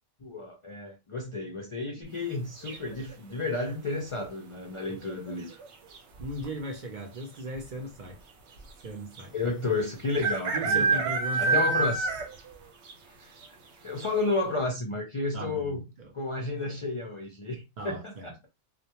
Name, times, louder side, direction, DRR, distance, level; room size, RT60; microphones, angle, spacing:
voice 1, 0.2-5.6 9.3-11.1 11.4-12.1 13.0-13.3 13.8-15.8 16.1-18.5, left 3 dB, 50° left, 0.4 m, -32 dB
sound 1, 2.7-3.1 4.9-5.3 5.6-5.7 5.9-6.5 7.2-7.3 7.5-7.6 9.2-9.3 10.2-12.5 12.9-13.0 13.4-13.5 14.0-14.1, right 4 dB, 90° right, 1.0 m, -27 dB
voice 2, 6.2-8.2 8.8-9.3 10.5-11.7 15.3-16.1 17.8-18.3, right 1 dB, 55° right, 0.6 m, -37 dB
2.1 x 2.1 x 2.8 m
omnidirectional pair, 1.1 m